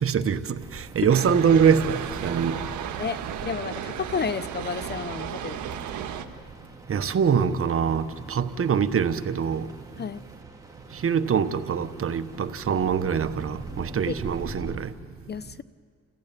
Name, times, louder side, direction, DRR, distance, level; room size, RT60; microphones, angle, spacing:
voice 1, 0.0-2.6 6.9-9.7 11.0-14.9, right 7 dB, 45° right, 1.2 m, -24 dB
sound 1, 0.6-14.8, right 2 dB, 10° right, 2.8 m, -44 dB
sound 2, 1.1-6.3, right 9 dB, 80° right, 1.5 m, -34 dB
voice 2, 3.0-5.6 10.0-10.2 14.1-14.2 15.3-15.6, left 6 dB, 35° left, 0.6 m, -31 dB
29.5 x 15.0 x 9.1 m
cardioid pair, 90°, 30 cm